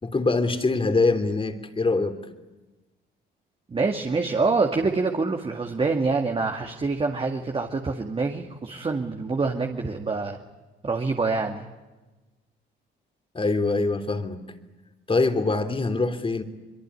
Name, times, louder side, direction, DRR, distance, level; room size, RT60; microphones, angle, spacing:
voice 1, 0.0-2.2 13.3-14.4 15.1-16.4, left 3 dB, 25° left, 8 dB, 3.3 m, -24 dB
voice 2, 3.7-10.4 10.8-11.6, right 4 dB, 30° right, 3 dB, 2.2 m, -26 dB
24.5 x 22.5 x 9.8 m, 1.1 s
cardioid pair, 90°, 20 cm